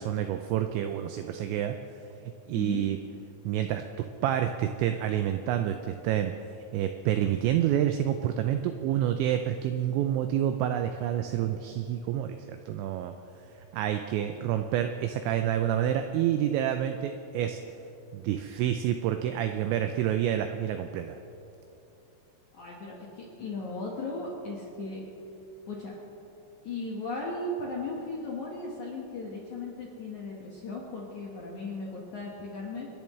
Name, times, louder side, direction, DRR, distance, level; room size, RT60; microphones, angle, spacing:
voice 1, 0.0-1.8 2.5-3.0 3.5-6.3 6.7-13.1 13.7-17.6 18.1-21.2, right 11 dB, 90° right, 7 dB, 2.6 m, -28 dB
voice 2, 2.5-2.9 22.5-25.0 25.7-25.9 26.6-32.9, left 2 dB, 80° left, -3 dB, 1.7 m, -37 dB
29.0 x 10.5 x 3.2 m, 2.8 s
omnidirectional pair, 5.8 m